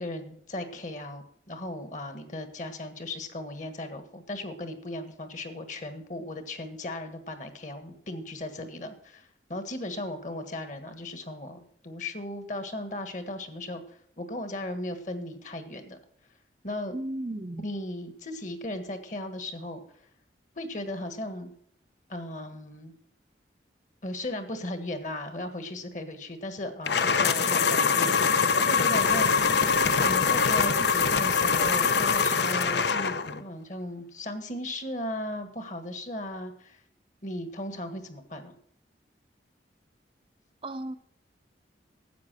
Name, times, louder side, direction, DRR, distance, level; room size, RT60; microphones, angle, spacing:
voice 1, 0.0-16.0 16.6-17.0 17.6-19.8 20.5-21.5 22.1-22.9 24.0-29.6 30.0-33.1 33.4-36.8 37.2-38.5, left 1 dB, 45° left, 9 dB, 1.5 m, -37 dB
voice 2, 16.9-17.7 40.6-41.0, right 1 dB, 30° right, 9 dB, 0.5 m, -34 dB
sound 1, 26.9-33.4, left 5 dB, 70° left, 0.8 m, -23 dB
12.0 x 8.4 x 6.2 m, 0.67 s
head